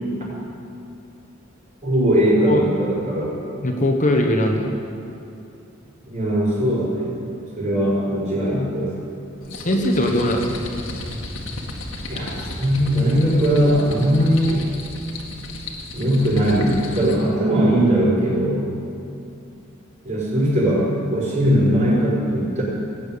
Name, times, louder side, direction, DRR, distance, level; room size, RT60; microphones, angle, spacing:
voice 1, 1.8-3.3 6.1-7.2 7.5-8.9 12.1-14.7 15.9-18.7 20.0-22.6, equal, 40° right, -6 dB, 5.0 m, -19 dB
voice 2, 3.6-4.7 9.5-10.5, left 1 dB, 40° left, 2 dB, 1.3 m, -20 dB
sound 1, 9.4-17.3, left 2 dB, 80° left, 2.0 m, -34 dB
18.5 x 8.9 x 8.5 m, 2.6 s
head